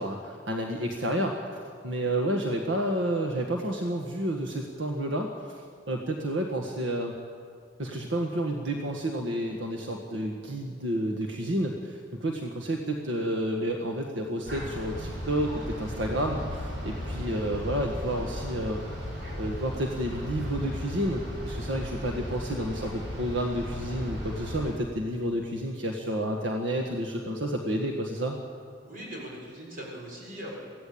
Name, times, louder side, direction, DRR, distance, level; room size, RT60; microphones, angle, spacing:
voice 1, 0.0-7.1 7.8-19.0 19.4-28.4, right 1 dB, 80° right, 2 dB, 1.7 m, -30 dB
sound 1, 14.4-24.7, equal, 65° right, 5.9 m, -36 dB
voice 2, 28.8-30.7, equal, 50° right, -2 dB, 6.7 m, -40 dB
23.5 x 16.0 x 8.7 m, 2.2 s
head